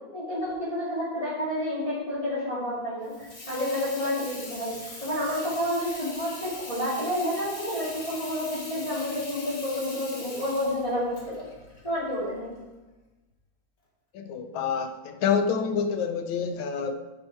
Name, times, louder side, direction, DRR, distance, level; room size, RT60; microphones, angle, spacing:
voice 1, 0.1-4.7 5.0-11.5 11.8-12.6, left 1 dB, 20° left, -9 dB, 2.1 m, -30 dB
Water tap faucet / Sink (filling or washing), 3.0-12.6, left 2 dB, 45° left, 1.9 m, -42 dB
voice 2, 14.1-17.0, left 6 dB, 85° left, 6 dB, 1.5 m, -27 dB
9.7 x 4.9 x 4.5 m, 1.1 s
omnidirectional pair, 2.1 m